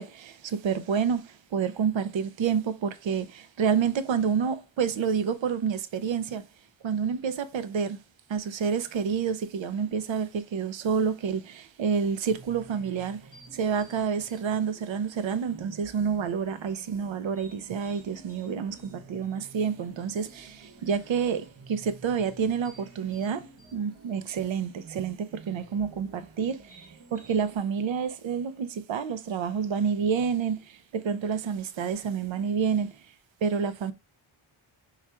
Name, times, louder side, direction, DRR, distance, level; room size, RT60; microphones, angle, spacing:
voice 1, 0.0-6.4 6.8-8.0 8.3-13.2 13.5-26.9 27.1-32.9 33.4-33.9, right 6 dB, 65° right, 0.6 m, -29 dB
sound 1, 12.3-27.6, right 3 dB, 30° right, 1.1 m, -51 dB
4.8 x 2.3 x 4.2 m
wide cardioid pair, 110°, 50 cm